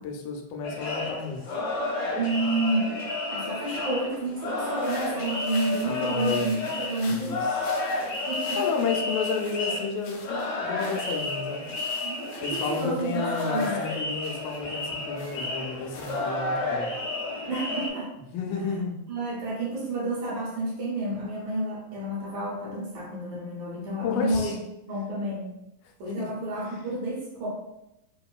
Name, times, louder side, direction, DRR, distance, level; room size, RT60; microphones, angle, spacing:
voice 1, 0.0-1.4 5.8-6.6 7.1-7.8 8.6-11.7 12.4-16.9 18.3-19.0 24.0-24.6 26.2-26.3, left 5 dB, 85° left, 2 dB, 2.2 m, -31 dB
sound 1, 0.6-17.9, left 2 dB, 50° left, 2.1 m, -31 dB
voice 2, 2.2-2.9 3.3-7.4 8.3-8.6 12.0-13.8 17.5-18.1 19.1-24.6 24.9-25.5 26.0-27.5, right 2 dB, 70° right, -5 dB, 2.3 m, -30 dB
sound 2, 4.7-16.7, left 3 dB, 70° left, 2.0 m, -47 dB
5.2 x 2.9 x 2.3 m, 0.86 s
omnidirectional pair, 3.6 m